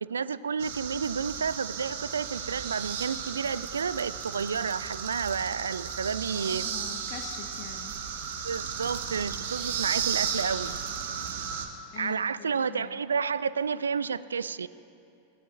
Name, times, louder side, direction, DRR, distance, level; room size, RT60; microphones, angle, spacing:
voice 1, 0.0-6.7 8.4-10.8 12.0-14.7, right 6 dB, 70° right, 17 dB, 0.3 m, -31 dB
sound 1, 0.6-11.7, right 7 dB, 55° right, 1.0 m, -34 dB
voice 2, 6.3-8.0 11.9-13.0, left 9 dB, 40° left, 5 dB, 0.8 m, -43 dB
20.0 x 17.0 x 2.5 m, 2.7 s
figure-of-eight pair, 90°, 0 cm